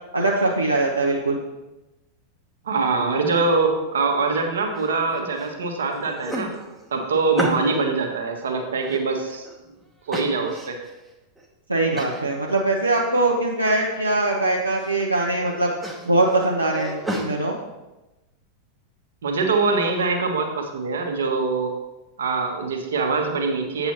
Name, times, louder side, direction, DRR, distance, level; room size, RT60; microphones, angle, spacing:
voice 1, 0.1-1.4 11.7-15.7 16.0-17.5, right 2 dB, 85° right, -2 dB, 0.7 m, -22 dB
voice 2, 2.6-6.5 6.9-9.5 10.1-10.8 19.2-21.7 22.2-23.9, right 4 dB, 65° right, 3 dB, 1.1 m, -23 dB
sound 1, 4.8-5.5 5.9-7.9 8.4-9.6 10.1-10.9 11.4-11.5 12.0-12.3 12.6-13.3 13.6-14.2 14.6-15.1 15.4-17.3, right 1 dB, 5° right, 1.0 m, -33 dB
8.3 x 6.8 x 2.9 m, 1.0 s
figure-of-eight pair, 90°, 0 cm